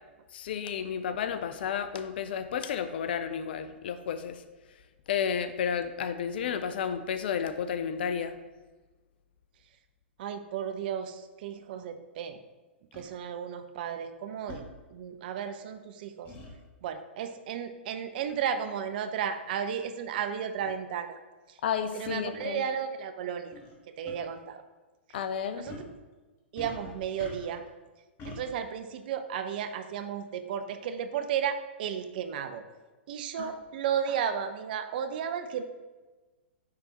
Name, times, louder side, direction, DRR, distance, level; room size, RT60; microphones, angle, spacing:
voice 1, 0.3-4.4 5.1-8.4 21.6-22.6 25.1-25.7 33.4-33.5, left 7 dB, 55° left, 11 dB, 0.4 m, -32 dB
voice 2, 10.2-12.4 12.9-14.6 14.9-16.3 16.8-21.2 21.5-21.6 21.9-23.5 24.0-24.6 25.6-25.9 26.5-27.6 28.2-32.6 33.1-35.6, right 8 dB, 50° right, 8 dB, 0.5 m, -34 dB
sound 1, 12.9-13.1 14.5-14.7 16.3-16.5 18.3-18.5 19.3-19.4 20.2-20.3 20.6-20.7 22.1-22.2 23.5-23.7 24.1-24.2 25.7-25.9 26.6-27.7 28.2-28.4, left 2 dB, 30° left, 1.2 m, -44 dB
9.6 x 3.4 x 3.0 m, 1.2 s
figure-of-eight pair, 105°, 6 cm